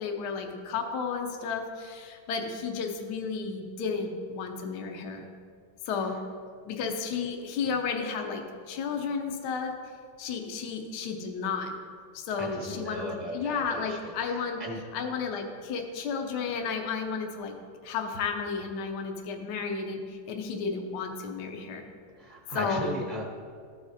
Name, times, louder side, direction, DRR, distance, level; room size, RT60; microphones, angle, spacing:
voice 1, 0.0-5.3 5.9-6.2 6.7-9.7 10.2-11.7 12.1-14.6 14.9-17.6 17.8-21.8 22.5-22.9, left 5 dB, 65° left, 4 dB, 1.2 m, -32 dB
voice 2, 12.4-14.0 14.6-14.8 22.2-23.2, right 1 dB, 35° right, -3 dB, 0.8 m, -36 dB
14.0 x 4.9 x 2.7 m, 2.1 s
omnidirectional pair, 2.2 m